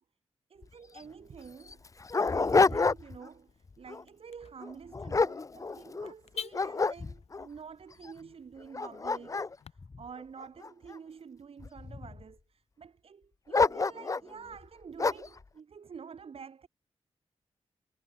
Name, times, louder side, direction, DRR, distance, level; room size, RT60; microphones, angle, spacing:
Car / Alarm, 0.5-9.7, left 7 dB, 80° left, 2.3 m, -51 dB
voice 1, 0.5-1.8 2.3-16.7, right 6 dB, 65° right, 2.3 m, -48 dB
Dog, 0.6-0.7 1.0-1.1 1.7-3.3 3.7-4.0 4.6-6.1 6.5-7.5 8.0-8.1 8.6-10.9 11.6-12.2 13.5-14.3 15.0-15.4, left 4 dB, 30° left, 0.7 m, -28 dB
cardioid pair, 80°, 11 cm